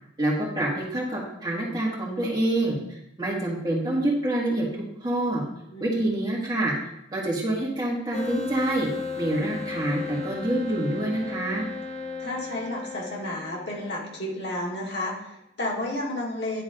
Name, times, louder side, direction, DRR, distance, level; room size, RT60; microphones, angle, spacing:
voice 1, 0.2-5.4 5.8-6.7 7.1-8.9 9.2-11.6, right 1 dB, 20° right, -5 dB, 1.9 m, -27 dB
voice 2, 5.7-6.0 12.2-16.6, left 1 dB, 70° left, -3 dB, 1.9 m, -32 dB
sound 1, 8.1-14.5, left 4 dB, 40° left, 0.7 m, -36 dB
10.5 x 3.9 x 3.7 m, 0.82 s
head